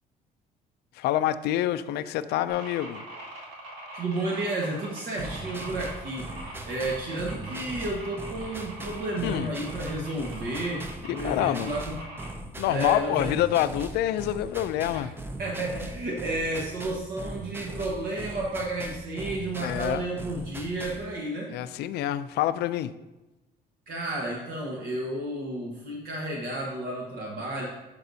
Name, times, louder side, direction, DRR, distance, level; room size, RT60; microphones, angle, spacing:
voice 1, 1.0-3.0 9.2-9.5 11.1-11.7 12.6-15.1 19.6-20.1 21.5-22.9, left 12 dB, 75° left, 0.4 m, -27 dB
sound 1, 2.5-12.3, right 1 dB, 85° right, 2.2 m, -42 dB
voice 2, 3.9-12.0 12.6-13.3 14.9-15.0 15.4-21.5 23.9-27.7, right 1 dB, 65° right, 1.3 m, -32 dB
sound 2, 5.2-21.1, right 2 dB, 15° right, 0.5 m, -39 dB
11.0 x 5.3 x 2.7 m
cardioid pair, 110°, 17 cm